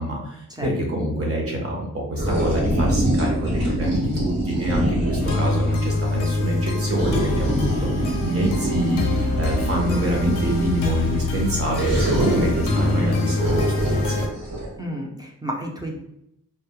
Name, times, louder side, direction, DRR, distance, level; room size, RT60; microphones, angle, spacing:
voice 1, 0.0-14.3, right 1 dB, 45° right, -1 dB, 0.8 m, -26 dB
sound 1, 2.2-5.5 7.0-10.8 11.7-14.7, right 1 dB, 90° right, 1.1 m, -24 dB
sound 2, 5.2-14.3, left 2 dB, 70° left, 0.5 m, -25 dB
voice 2, 14.8-16.0, equal, 10° right, -2 dB, 0.4 m, -31 dB
2.2 x 2.0 x 2.9 m, 0.77 s
wide cardioid pair, 90°, 33 cm